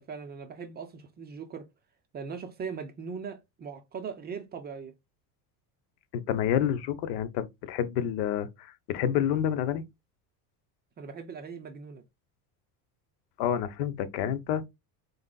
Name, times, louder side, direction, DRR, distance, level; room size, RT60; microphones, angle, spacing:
voice 1, 0.0-1.7 2.1-4.9 11.0-12.0, right 6 dB, 25° right, 0.4 m, -40 dB
voice 2, 6.1-9.8 13.4-14.6, left 9 dB, 75° left, 0.9 m, -29 dB
5.0 x 3.9 x 2.2 m
cardioid pair, 155°, 44 cm